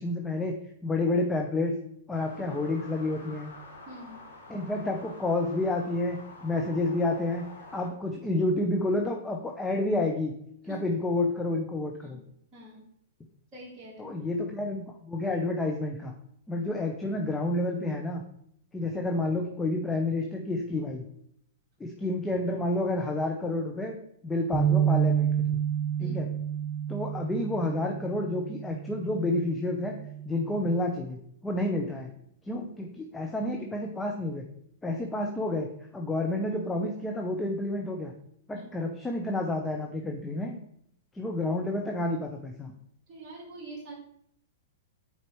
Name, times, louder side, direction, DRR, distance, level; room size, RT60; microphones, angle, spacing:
voice 1, 0.0-1.7 2.1-3.5 4.5-6.2 6.4-10.3 10.6-12.2 14.0-16.1 16.5-18.2 18.7-21.0 21.8-24.0 24.2-25.6 26.0-26.3 26.9-30.0 30.3-32.1 32.4-34.5 34.8-35.7 35.9-38.1 38.5-40.6 41.1-42.7, left 2 dB, 10° left, 2 dB, 0.7 m, -30 dB
sound 1, 2.1-7.9, left 2 dB, 75° left, 1.6 m, -48 dB
voice 2, 3.9-4.2 10.7-10.8 12.0-12.2 12.5-12.9 13.5-14.1 26.0-26.2 38.5-38.6 43.1-43.9, right 2 dB, 30° right, -6 dB, 2.2 m, -45 dB
sound 2, 24.5-30.8, right 9 dB, 15° right, 1.4 m, -29 dB
8.9 x 4.4 x 3.1 m, 0.70 s
figure-of-eight pair, 105°, 0 cm